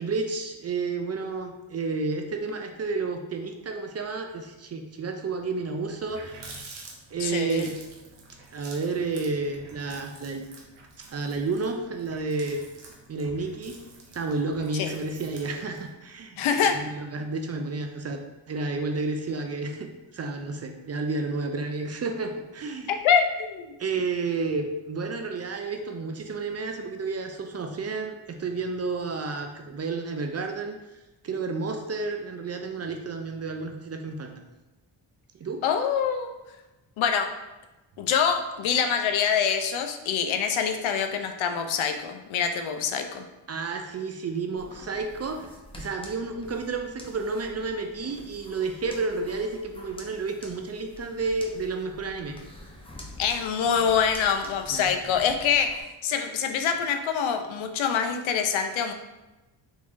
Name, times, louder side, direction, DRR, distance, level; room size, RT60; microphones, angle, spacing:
voice 1, 0.0-6.3 7.1-7.8 8.5-10.4 11.1-12.6 13.1-13.8 14.1-18.2 18.5-22.9 23.8-30.7 31.2-34.5 35.4-35.6 43.5-45.5 45.8-52.4 54.7-54.9, right 3 dB, 35° right, 5 dB, 0.4 m, -31 dB
Water tap faucet, 5.8-15.9, right 3 dB, 70° right, 0.9 m, -48 dB
voice 2, 7.2-7.7 14.7-14.9 16.4-16.8 22.9-23.7 35.6-36.3 37.0-37.3 38.0-43.2 53.2-55.7 56.0-58.9, left 7 dB, 75° left, 5 dB, 0.6 m, -25 dB
sound 1, 44.6-55.8, left 1 dB, 10° left, 0.7 m, -47 dB
3.6 x 3.1 x 2.5 m, 1.0 s
cardioid pair, 60°, 48 cm